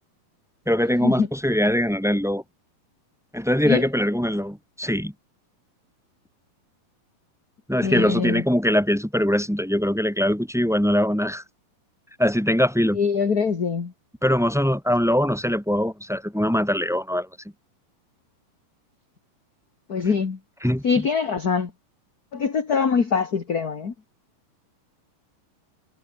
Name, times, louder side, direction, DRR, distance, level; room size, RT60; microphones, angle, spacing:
voice 1, 0.7-2.4 3.3-5.1 7.7-11.4 12.2-13.0 14.2-17.3 20.6-20.8, equal, ahead, 5.0 m, -22 dB
voice 2, 7.8-8.4 12.9-13.9 19.9-20.4 20.8-21.7 22.3-23.9, left 5 dB, 30° left, 1.9 m, -23 dB
omnidirectional pair, 4.2 m